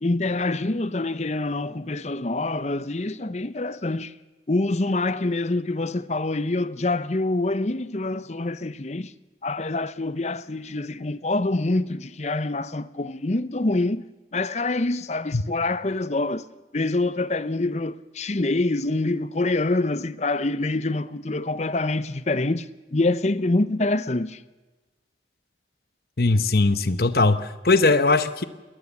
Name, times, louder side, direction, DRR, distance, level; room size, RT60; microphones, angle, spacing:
voice 1, 0.0-4.2 4.5-9.1 9.4-14.1 14.3-16.5 16.7-24.4, left 2 dB, 40° left, 0.8 m, -26 dB
voice 2, 26.2-28.4, left 3 dB, 55° left, 1.1 m, -20 dB
21.5 x 19.5 x 7.2 m
head